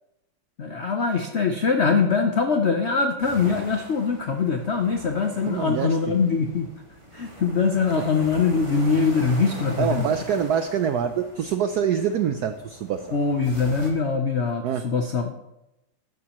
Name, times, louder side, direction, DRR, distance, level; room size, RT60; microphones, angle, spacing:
voice 1, 0.6-6.7 7.1-10.0 13.1-15.4, left 5 dB, 85° left, 5 dB, 0.6 m, -23 dB
sound 1, 3.2-13.9, right 1 dB, 15° right, 1.6 m, -41 dB
voice 2, 5.5-6.2 8.0-8.1 9.8-13.1 14.6-14.8, right 8 dB, 85° right, 9 dB, 0.8 m, -25 dB
13.0 x 11.0 x 3.0 m, 0.91 s
omnidirectional pair, 2.3 m